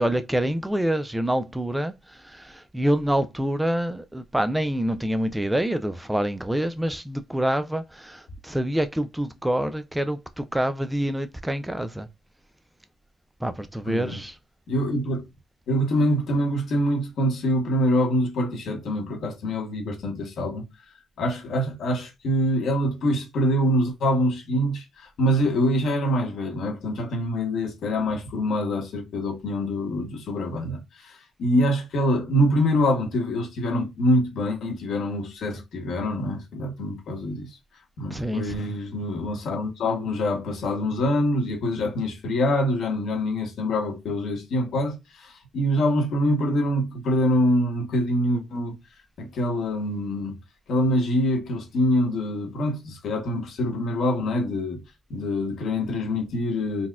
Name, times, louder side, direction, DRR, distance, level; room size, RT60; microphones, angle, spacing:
voice 1, 0.0-12.1 13.4-14.3 38.1-38.4, right 1 dB, 5° right, 0.3 m, -26 dB
voice 2, 13.9-14.2 14.7-15.3 15.7-20.7 21.2-37.5 38.0-48.8 49.2-50.4 50.7-54.8 55.1-56.9, equal, 70° left, 1.0 m, -25 dB
4.0 x 2.1 x 2.4 m
cardioid pair, 90°, 0 cm